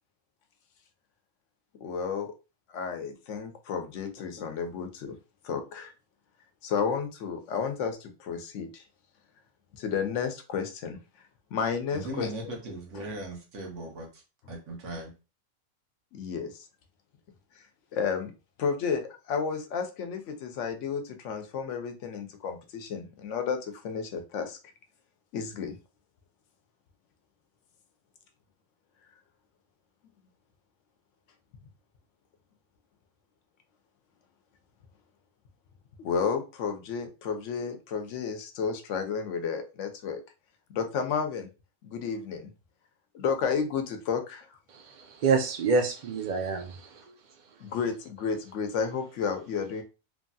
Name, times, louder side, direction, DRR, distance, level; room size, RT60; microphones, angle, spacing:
voice 1, 1.8-2.3 2.7-5.2 5.4-5.9 6.6-8.8 9.7-11.0 11.5-12.5 16.1-16.6 17.6-17.7 17.9-18.3 18.6-24.6 25.3-25.8 36.0-40.2 40.7-41.5 41.8-42.5 43.1-44.5 47.6-49.8, left 6 dB, 80° left, 0.9 m, -32 dB
voice 2, 11.9-14.2 14.5-15.1, right 1 dB, 80° right, 1.1 m, -38 dB
voice 3, 45.2-46.9, right 4 dB, 55° right, 0.5 m, -26 dB
3.0 x 2.6 x 2.3 m
omnidirectional pair, 1.3 m